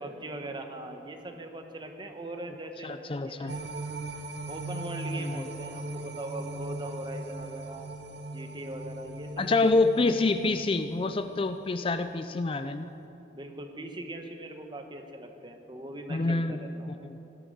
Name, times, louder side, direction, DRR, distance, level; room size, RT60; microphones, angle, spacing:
voice 1, 0.0-3.6 4.5-7.9 8.3-9.7 13.3-16.9, right 1 dB, 25° right, 5 dB, 1.1 m, -40 dB
voice 2, 2.8-3.5 5.2-5.5 9.4-12.9 16.1-16.7, left 3 dB, 30° left, 10 dB, 0.4 m, -27 dB
sound 1, 3.5-11.9 12.3-12.4, right 1 dB, 65° right, 0.8 m, -39 dB
17.0 x 12.0 x 5.5 m, 2.9 s
head